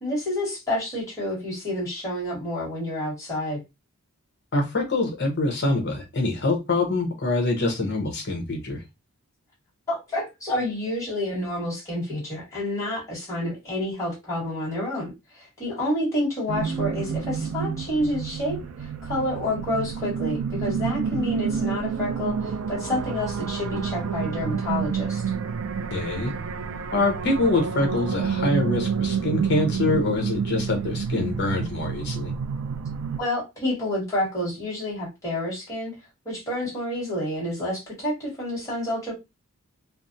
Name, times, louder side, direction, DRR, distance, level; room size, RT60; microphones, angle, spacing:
voice 1, 0.0-3.6 9.9-25.2 33.2-35.9 36.2-39.1, left 1 dB, 15° left, 1.6 m, -29 dB
voice 2, 4.5-8.8 25.9-26.3 26.9-32.3, left 2 dB, 50° left, 1.0 m, -25 dB
sound 1, 16.5-33.2, right 6 dB, 70° right, 0.4 m, -29 dB
3.2 x 2.0 x 2.6 m
head